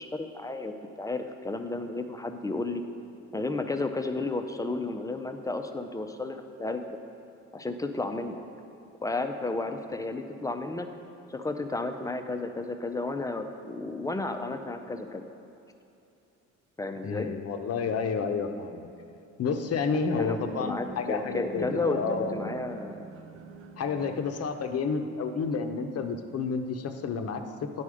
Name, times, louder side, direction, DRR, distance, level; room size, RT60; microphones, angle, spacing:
voice 1, 0.0-2.8 3.3-7.0 7.5-8.4 9.0-10.9 11.3-15.3 16.8-17.3 19.9-23.0, left 2 dB, 10° left, 6 dB, 0.5 m, -33 dB
voice 2, 17.0-18.9 19.4-22.5 23.8-27.8, left 5 dB, 55° left, 6 dB, 0.7 m, -30 dB
sound 1, 19.5-24.5, right 4 dB, 45° right, 0.5 m, -45 dB
9.7 x 4.3 x 4.9 m, 2.7 s
cardioid pair, 90°, 30 cm